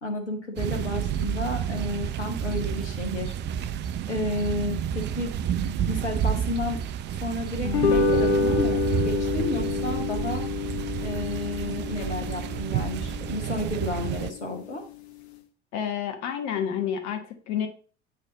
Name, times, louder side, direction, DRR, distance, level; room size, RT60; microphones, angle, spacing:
voice 1, 0.0-3.3 4.1-5.3 5.6-6.8 7.1-10.5 11.0-14.8, left 1 dB, 85° left, 2 dB, 1.1 m, -32 dB
sound 1, 0.6-14.3, right 9 dB, 35° right, 0.4 m, -30 dB
sound 2, 7.6-14.2, left 4 dB, 70° left, 0.8 m, -27 dB
voice 2, 15.7-17.7, left 8 dB, 50° left, 6 dB, 1.3 m, -29 dB
8.2 x 3.3 x 3.9 m, 0.41 s
figure-of-eight pair, 65°, 34 cm